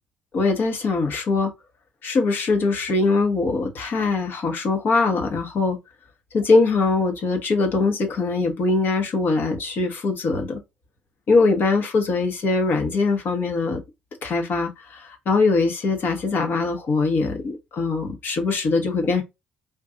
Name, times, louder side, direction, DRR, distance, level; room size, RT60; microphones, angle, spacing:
voice 1, 0.3-1.5 2.0-5.8 6.3-10.6 11.3-13.8 14.2-19.2, left 3 dB, 55° left, 1.1 m, -22 dB
3.7 x 2.6 x 2.6 m
hypercardioid pair, 50°, 4 cm